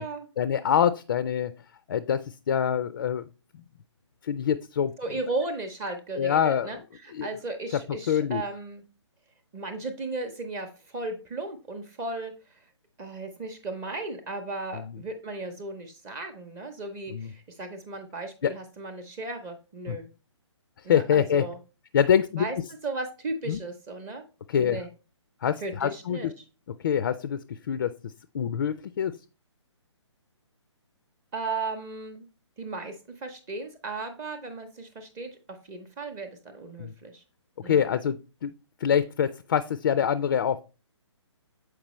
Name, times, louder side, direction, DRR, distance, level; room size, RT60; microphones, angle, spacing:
voice 1, 0.4-1.5 1.9-3.3 4.2-4.9 6.2-6.7 7.1-7.3 8.1-8.4 14.7-15.0 17.1-17.3 18.4-18.5 19.9-20.0 20.9-21.4 21.9-22.4 23.5-23.6 24.5-24.8 25.4-26.3 26.8-29.2 36.8-36.9 37.6-38.5 38.8-40.6, left 8 dB, 45° left, 14 dB, 0.4 m, -25 dB
voice 2, 5.0-8.8 9.5-12.6 13.0-20.1 20.8-21.6 22.4-22.6 22.8-24.2 24.5-24.9 25.6-26.3 31.3-32.3 32.6-37.2 37.6-37.9, right 2 dB, 15° right, 5 dB, 0.6 m, -35 dB
7.4 x 4.8 x 3.0 m, 0.33 s
hypercardioid pair, 150°, 16 cm